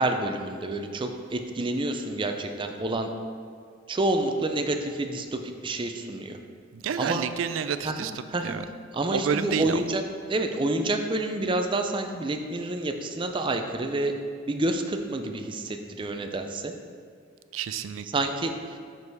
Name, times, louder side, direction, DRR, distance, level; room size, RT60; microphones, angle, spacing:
voice 1, 0.0-3.1 3.9-6.4 7.0-7.2 7.8-8.6 8.9-10.0 10.3-14.1 14.5-16.7 18.1-18.8, right 2 dB, 25° right, 5 dB, 0.4 m, -28 dB
voice 2, 6.7-8.1 8.4-8.6 9.1-9.8 17.5-18.1, right 7 dB, 90° right, 12 dB, 0.4 m, -29 dB
6.2 x 5.4 x 4.7 m, 2.1 s
head